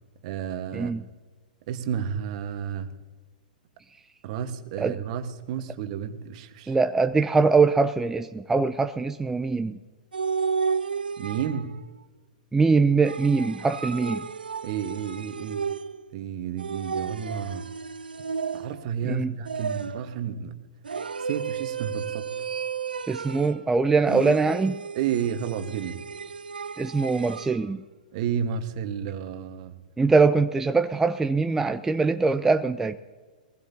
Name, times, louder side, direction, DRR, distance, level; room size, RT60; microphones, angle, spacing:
voice 1, 0.2-0.9 1.7-3.0 4.2-6.8 11.2-11.8 14.6-15.7 16.1-17.7 18.5-20.6 21.2-22.4 24.9-26.0 28.1-29.8, right 8 dB, 50° right, 1.4 m, -31 dB
voice 2, 6.7-9.8 12.5-14.3 19.0-19.3 23.1-24.8 26.8-27.8 30.0-32.9, right 4 dB, 10° right, 0.4 m, -22 dB
sound 1, 10.1-11.8 13.0-16.1 16.6-18.9 19.5-20.2 20.8-23.6 24.1-27.6, right 6 dB, 90° right, 0.4 m, -33 dB
22.5 x 16.0 x 2.8 m
hypercardioid pair, 115°, 5 cm